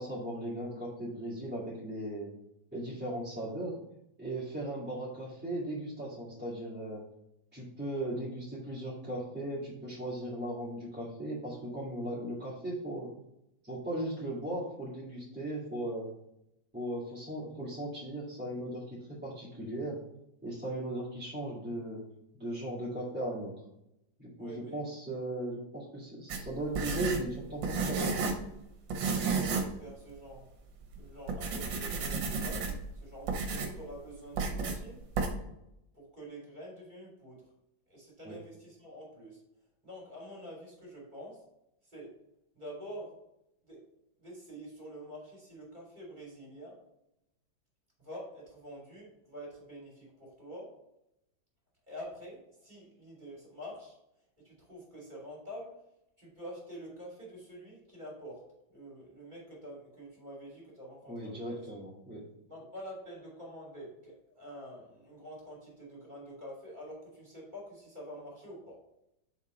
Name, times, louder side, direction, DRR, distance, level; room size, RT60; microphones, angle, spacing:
voice 1, 0.0-2.3 2.7-3.7 4.2-7.0 7.5-13.1 13.6-16.1 16.7-20.0 20.4-22.0 22.4-23.5 24.2-28.2 38.2-38.4 61.1-62.2, right 1 dB, 5° right, -9 dB, 1.9 m, -37 dB
voice 2, 24.4-24.8 28.9-30.4 30.9-35.0 35.9-37.4 37.9-39.4 39.8-41.4 41.9-42.1 42.5-43.2 43.6-43.8 44.2-46.7 48.0-50.7 51.9-54.0 54.4-55.7 56.2-58.4 58.7-61.6 62.5-68.8, equal, 25° right, -4 dB, 2.9 m, -47 dB
sound 1, 26.3-28.5 28.9-29.8 30.1-30.2 30.8-31.0 31.3-32.9 33.3-33.8 34.4-34.8 35.2-35.3, right 4 dB, 70° right, 1.7 m, -32 dB
6.9 x 4.4 x 4.2 m, 0.84 s
omnidirectional pair, 2.1 m